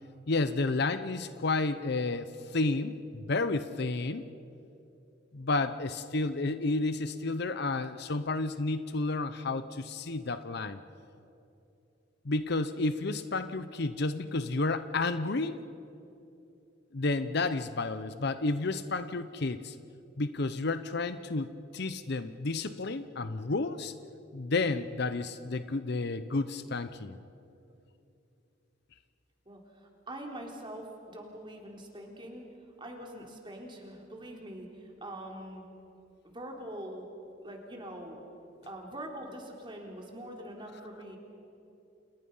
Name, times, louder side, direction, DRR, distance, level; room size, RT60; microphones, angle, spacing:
voice 1, 0.3-4.2 5.3-10.8 12.2-15.6 16.9-19.8 20.2-23.9 24.3-27.2, left 3 dB, 60° left, 12 dB, 0.8 m, -31 dB
voice 2, 29.5-32.4 32.8-35.6 36.2-37.0 37.4-38.2 38.6-41.2, right 1 dB, 25° right, 0 dB, 3.8 m, -43 dB
30.0 x 28.5 x 5.6 m, 2.8 s
head